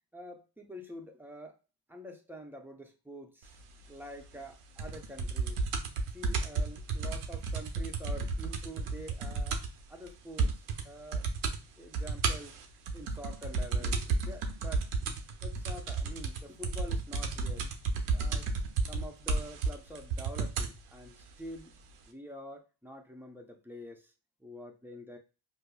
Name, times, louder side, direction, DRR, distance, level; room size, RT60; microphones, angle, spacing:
voice 1, 0.1-1.6 1.9-3.6 3.9-5.6 6.1-9.6 9.9-11.3 11.8-12.5 12.9-14.9 15.4-17.7 18.1-18.5 18.9-21.7 22.1-24.1 24.4-25.2, equal, 5° right, 3 dB, 0.7 m, -47 dB
sound 1, 4.8-9.8 10.1-10.2 10.4-10.8 11.1-11.6 11.9-20.8 21.6-21.7, right 4 dB, 90° right, 0.7 m, -32 dB
5.2 x 2.0 x 2.3 m, 0.31 s
cardioid pair, 60°, 50 cm